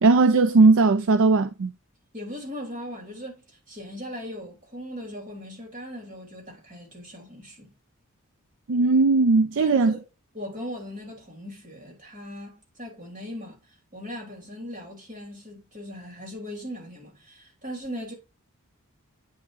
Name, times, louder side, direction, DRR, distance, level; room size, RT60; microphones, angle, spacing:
voice 1, 0.0-1.7 8.7-9.9, right 3 dB, 60° right, 0.5 m, -18 dB
voice 2, 2.1-7.7 9.6-10.0 10.3-18.1, equal, 35° right, 3.2 m, -39 dB
8.7 x 5.4 x 2.5 m
head